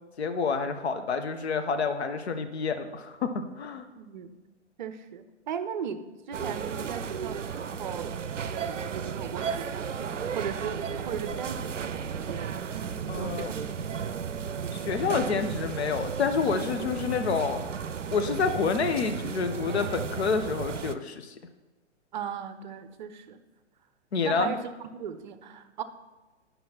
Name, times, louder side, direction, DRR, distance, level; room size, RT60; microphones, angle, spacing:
voice 1, 0.2-3.8 13.1-13.5 14.9-17.6 18.1-21.3 24.1-24.5, left 5 dB, 60° left, 8 dB, 0.8 m, -28 dB
voice 2, 4.0-4.3 4.8-10.0 10.3-11.8 12.3-12.7 13.2-14.2 22.1-23.4 24.2-25.8, right 7 dB, 40° right, 10 dB, 0.6 m, -38 dB
sound 1, 6.3-20.9, right 7 dB, 80° right, 0.5 m, -34 dB
11.5 x 5.5 x 2.8 m, 1.2 s
figure-of-eight pair, 115°, 36 cm